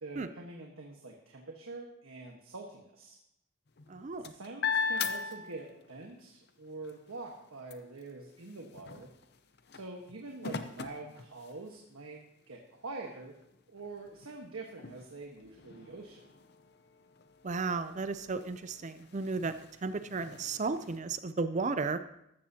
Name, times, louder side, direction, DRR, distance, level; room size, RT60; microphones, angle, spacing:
voice 1, 0.0-3.2 4.2-9.1 9.7-12.2 12.5-13.3 13.7-16.2, right 3 dB, 90° right, 0 dB, 1.4 m, -45 dB
sound 1, 3.7-6.1 6.5-11.9 12.6-12.7 13.0-21.0, left 5 dB, 50° left, 0.7 m, -41 dB
voice 2, 3.9-4.3 17.4-19.5 19.8-22.0, right 4 dB, 35° right, 11 dB, 0.4 m, -34 dB
14.0 x 13.0 x 2.8 m, 0.80 s
head